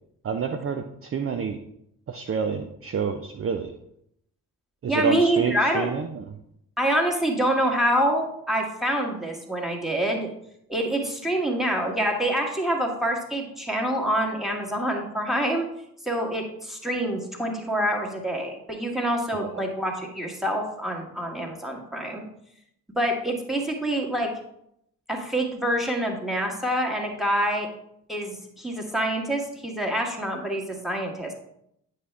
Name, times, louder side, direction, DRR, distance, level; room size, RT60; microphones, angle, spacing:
voice 1, 0.2-1.6 2.1-3.7 4.8-6.2 19.4-19.5, right 6 dB, 30° right, 6 dB, 0.7 m, -28 dB
voice 2, 4.9-5.9 6.8-10.3 10.7-15.7 16.0-22.2 23.0-24.3 25.1-27.7 28.1-31.3, right 1 dB, ahead, 0 dB, 1.9 m, -26 dB
9.3 x 5.6 x 3.5 m, 0.75 s
figure-of-eight pair, 40°, 48 cm